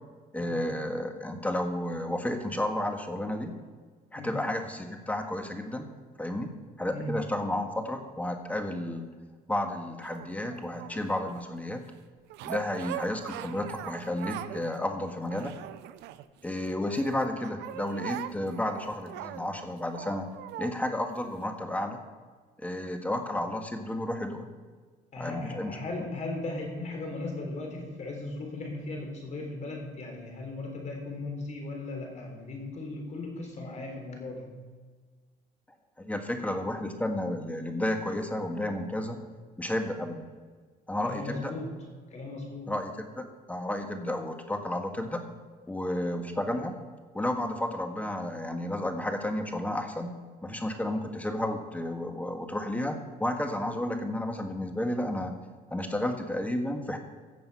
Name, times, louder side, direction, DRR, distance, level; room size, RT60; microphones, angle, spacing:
voice 1, 0.3-3.5 4.1-5.9 6.2-6.5 6.8-9.1 9.5-11.8 12.4-15.5 16.4-20.3 20.6-22.0 22.6-24.5 25.2-25.8 36.0-39.2 39.6-40.3 40.9-41.5 42.7-45.2 45.7-46.8 47.1-50.1 50.4-55.4 55.7-57.0, left 1 dB, 10° left, 5 dB, 1.6 m, -32 dB
sound 1, 10.0-11.4 12.3-14.7 15.0-16.5 16.9-20.7 21.4-21.5, right 13 dB, 85° right, 0.6 m, -41 dB
voice 2, 25.1-34.7 41.0-42.7, left 2 dB, 45° left, 2 dB, 3.8 m, -37 dB
16.0 x 6.8 x 5.5 m, 1.5 s
cardioid pair, 110°, 17 cm